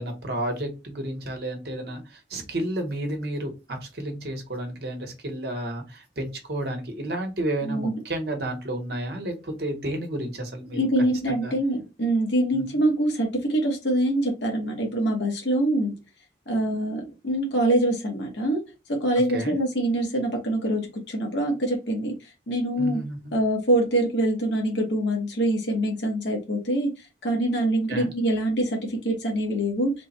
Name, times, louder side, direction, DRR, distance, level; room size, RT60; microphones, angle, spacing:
voice 1, 0.0-10.8 11.3-11.5 12.5-12.8 19.3-19.6 22.8-23.3 27.9-28.1, right 1 dB, 65° right, 4 dB, 1.0 m, -31 dB
voice 2, 10.7-15.9 16.5-18.6 19.0-22.1 22.5-23.0 23.3-26.9 27.2-29.9, right 1 dB, 85° left, 0 dB, 1.1 m, -24 dB
3.3 x 2.2 x 4.1 m, 0.28 s
head